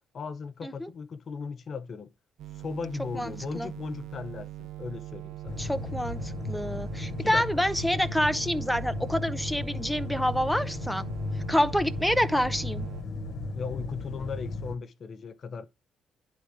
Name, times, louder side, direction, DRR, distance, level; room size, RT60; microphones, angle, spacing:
voice 1, 0.1-2.1 2.5-5.6 7.1-7.6 13.5-15.7, left 5 dB, 50° left, 0.8 m, -37 dB
sound 1, 2.4-13.0, right 15 dB, 80° right, 0.5 m, -41 dB
voice 2, 3.1-3.7 5.6-11.0 11.5-12.9, left 1 dB, ahead, 0.7 m, -27 dB
sound 2, 5.5-14.8, left 3 dB, 75° left, 1.0 m, -35 dB
9.8 x 3.8 x 4.8 m
cardioid pair, 90°, 0 cm